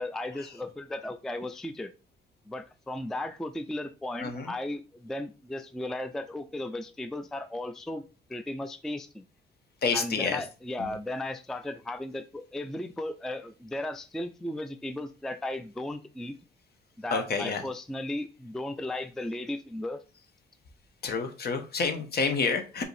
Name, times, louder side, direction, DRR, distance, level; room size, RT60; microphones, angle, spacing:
voice 1, 0.0-1.9 2.5-8.0 8.3-9.3 9.9-16.3 17.0-20.0, left 1 dB, ahead, 9 dB, 0.3 m, -35 dB
voice 2, 4.2-4.5 9.8-10.4 10.8-10.9 17.1-17.6 21.0-22.8, left 4 dB, 55° left, 7 dB, 0.9 m, -29 dB
4.8 x 2.7 x 3.2 m, 0.34 s
cardioid pair, 90°, 20 cm